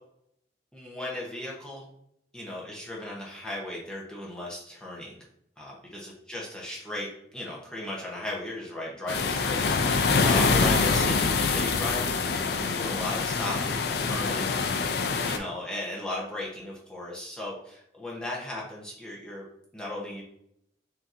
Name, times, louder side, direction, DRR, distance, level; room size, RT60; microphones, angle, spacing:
voice 1, 0.7-1.9 2.3-5.1 5.6-5.7 6.0-7.1 7.3-14.6 15.2-19.4 19.7-20.2, left 1 dB, 5° left, -5 dB, 0.8 m, -36 dB
sound 1, 9.1-15.4, left 4 dB, 60° left, 0.4 m, -25 dB
5.6 x 2.8 x 2.5 m, 0.73 s
head